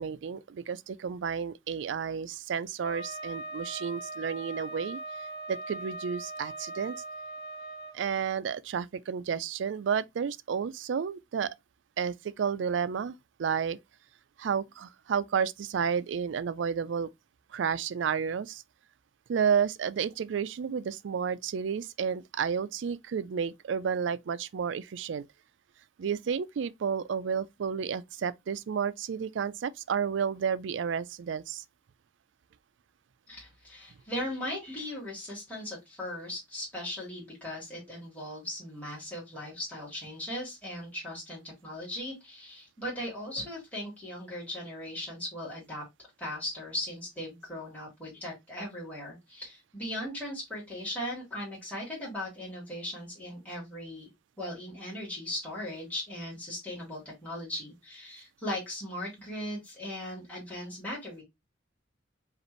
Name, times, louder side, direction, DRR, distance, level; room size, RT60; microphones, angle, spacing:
voice 1, 0.0-7.0 7.9-11.5 12.0-13.8 14.4-17.1 17.5-18.6 19.3-25.2 26.0-31.6, right 7 dB, 70° right, 0.4 m, -31 dB
Wind instrument woodwind instrument, 2.8-8.0, right 2 dB, 55° left, 0.6 m, -40 dB
voice 2, 33.3-45.8 46.2-54.1 54.4-61.2, left 1 dB, 10° left, 2.0 m, -38 dB
5.1 x 2.5 x 3.1 m
head